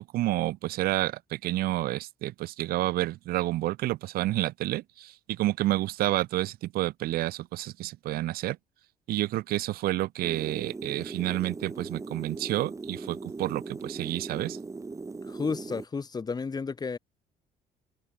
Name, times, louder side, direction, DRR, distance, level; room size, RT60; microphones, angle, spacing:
voice 1, 0.0-8.6 9.1-14.6, right 16 dB, 65° right, 0.4 m, -29 dB
sound 1, 10.2-15.9, right 3 dB, 20° right, 1.7 m, -39 dB
voice 2, 15.3-17.0, left 5 dB, 25° left, 1.3 m, -32 dB
cardioid pair, 110°, 17 cm